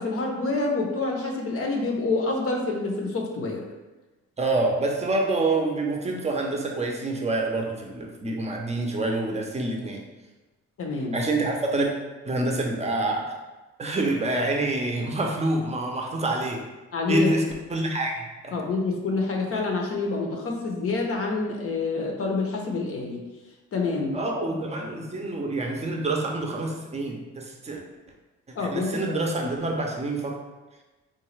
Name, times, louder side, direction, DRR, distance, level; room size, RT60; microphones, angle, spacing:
voice 1, 0.0-3.6 10.8-11.2 16.9-17.3 18.5-23.3 23.7-24.2 28.5-29.2, left 3 dB, 50° left, 0 dB, 0.7 m, -27 dB
voice 2, 4.4-10.0 11.1-11.9 12.2-13.3 13.8-16.6 17.1-17.4 17.7-18.6 24.1-27.8 28.6-30.4, right 2 dB, 20° right, 1 dB, 0.6 m, -27 dB
3.8 x 2.2 x 3.1 m, 1.1 s
cardioid pair, 90°, 30 cm